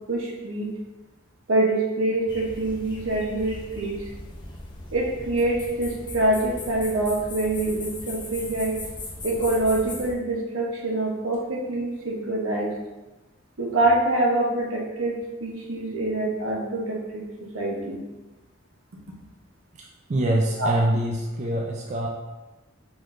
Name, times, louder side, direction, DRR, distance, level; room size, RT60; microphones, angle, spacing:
voice 1, 0.1-0.8 1.5-4.1 4.9-8.8 9.2-12.8 13.6-18.0 20.6-20.7, right 2 dB, 75° right, -2 dB, 1.0 m, -25 dB
sound 1, 2.3-10.1, left 2 dB, 25° left, 0.6 m, -38 dB
voice 2, 20.1-22.1, right 1 dB, 35° right, -1 dB, 0.4 m, -24 dB
4.7 x 3.8 x 2.6 m, 1.1 s
head